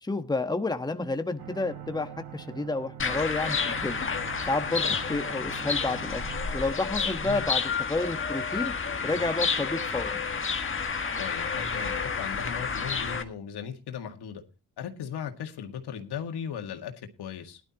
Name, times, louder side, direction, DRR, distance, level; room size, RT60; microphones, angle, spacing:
voice 1, 0.0-4.0 4.4-6.2 6.5-7.6 7.9-8.7 9.0-10.2, left 2 dB, 10° left, 1.2 m, -30 dB
sound 1, 1.4-6.6, right 9 dB, 80° right, 2.9 m, -44 dB
sound 2, 3.0-13.2, left 5 dB, 30° left, 1.6 m, -30 dB
voice 2, 7.2-7.5 11.2-14.4 14.8-17.6, left 7 dB, 85° left, 2.0 m, -37 dB
18.5 x 11.5 x 2.9 m
cardioid pair, 95°, 38 cm